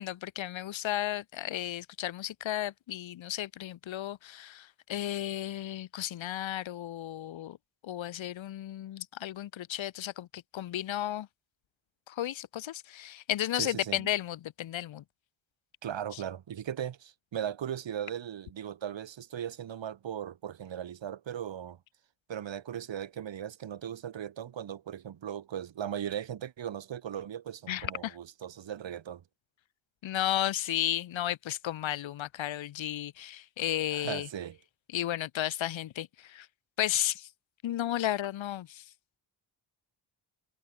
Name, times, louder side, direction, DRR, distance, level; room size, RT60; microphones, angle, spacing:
voice 1, 0.0-7.6 7.8-11.3 12.1-15.0 16.1-16.2 27.7-28.1 30.0-34.3 34.9-36.5 36.8-37.3 37.6-38.8, left 12 dB, 90° left, 2.7 m, -33 dB
voice 2, 13.5-14.0 15.8-21.8 22.3-29.2 33.9-34.6, right 9 dB, 75° right, 5.1 m, -38 dB
cardioid pair, 65°, 45 cm